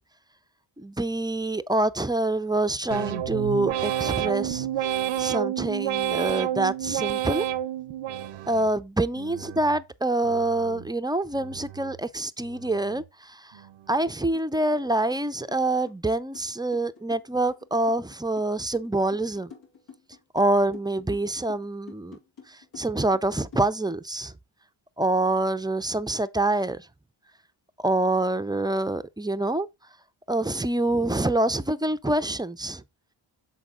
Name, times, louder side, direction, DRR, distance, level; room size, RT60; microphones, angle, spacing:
voice 1, 0.8-4.7 5.2-7.5 8.5-13.5 13.9-19.5 20.3-22.2 22.5-24.3 25.0-26.9 27.8-29.7 30.3-32.8, right 2 dB, 10° right, 0.4 m, -26 dB
sound 1, 2.9-8.7 9.2-9.8 10.2-10.9 11.3-12.0 12.4-13.0 13.5-14.1, right 11 dB, 85° right, 0.8 m, -30 dB
sound 2, 14.3-14.5 14.7-23.9, left 6 dB, 85° left, 3.0 m, -48 dB
7.4 x 4.1 x 3.7 m
cardioid pair, 65°, 49 cm